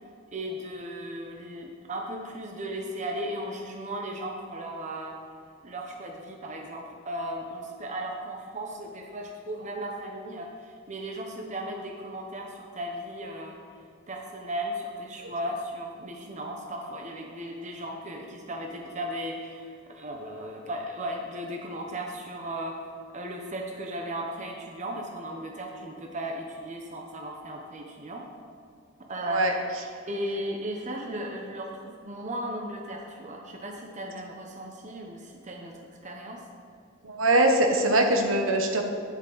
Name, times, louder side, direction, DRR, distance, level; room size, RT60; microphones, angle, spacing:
voice 1, 0.3-5.2 5.6-13.6 14.1-22.8 23.1-28.2 29.1-29.7 30.1-31.7 32.0-36.4, right 1 dB, 35° right, 1 dB, 1.0 m, -36 dB
voice 2, 37.0-38.8, right 1 dB, 75° right, 3 dB, 1.1 m, -22 dB
9.4 x 8.7 x 4.0 m, 2.4 s
head